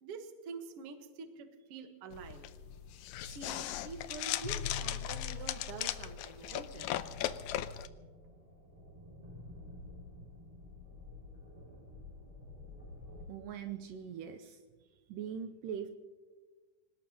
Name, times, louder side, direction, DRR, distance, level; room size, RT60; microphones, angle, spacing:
voice 1, 0.0-2.4 3.2-6.9, right 5 dB, 55° right, 6 dB, 1.9 m, -46 dB
sound 1, 2.1-7.9, left 11 dB, 90° left, 1.6 m, -38 dB
sound 2, 6.4-13.2, left 2 dB, 10° right, 4.3 m, -51 dB
voice 2, 13.3-14.6 15.1-15.9, right 8 dB, 80° right, 7 dB, 2.2 m, -41 dB
26.5 x 18.5 x 2.9 m, 1.4 s
omnidirectional pair, 4.0 m